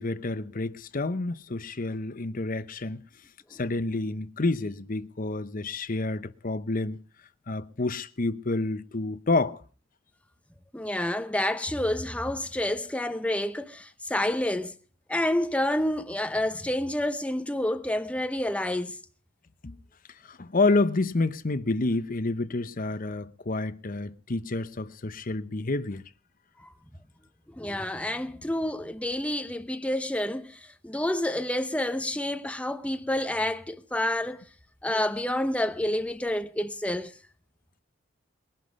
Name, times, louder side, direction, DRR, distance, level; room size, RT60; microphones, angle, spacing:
voice 1, 0.0-3.0 3.5-7.0 7.5-9.6 19.6-19.8 20.2-26.0, left 2 dB, 45° left, 0.8 m, -29 dB
voice 2, 10.7-14.8 15.1-19.0 26.6-26.7 27.5-34.4 34.8-37.2, left 1 dB, 5° left, 0.9 m, -29 dB
21.5 x 11.0 x 5.2 m
head